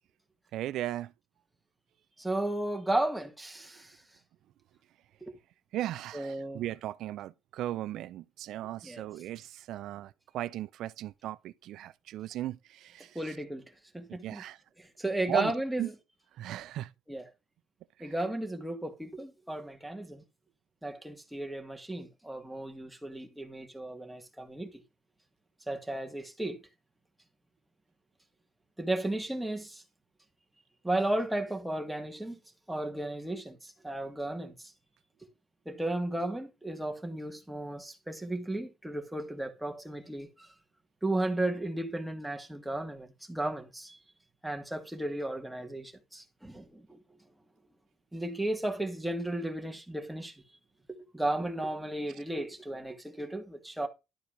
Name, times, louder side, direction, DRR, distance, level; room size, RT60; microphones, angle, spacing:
voice 1, 0.5-1.1 5.7-13.2 14.2-14.6 15.3-15.5 15.8-15.9 16.4-16.9 18.0-18.1, right 13 dB, 85° right, 0.5 m, -37 dB
voice 2, 2.2-4.0 5.2-5.3 6.1-6.6 8.8-9.0 13.1-13.6 13.9-14.4 14.8-15.9 17.1-17.3 18.0-20.2 20.8-24.8 25.7-26.6 28.8-29.8 30.8-32.4 32.7-34.7 35.7-40.5 41.0-44.0 44.4-47.0 48.1-50.3 51.1-53.9, right 1 dB, 5° right, 2.1 m, -34 dB
12.0 x 4.7 x 5.2 m
cardioid pair, 130°, 0 cm